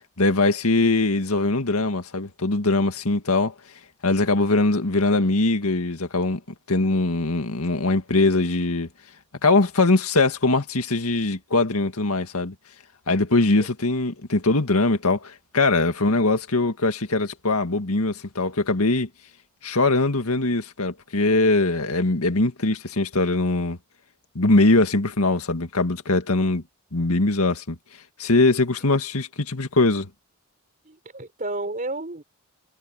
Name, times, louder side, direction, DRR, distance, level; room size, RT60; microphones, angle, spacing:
voice 1, 0.2-3.5 4.0-6.4 6.7-8.9 9.4-12.5 13.1-19.1 19.6-23.8 24.4-26.6 26.9-27.8 28.2-30.1, left 2 dB, 85° left, 1.9 m, -21 dB
voice 2, 30.8-32.2, right 2 dB, 40° right, 4.7 m, -31 dB
head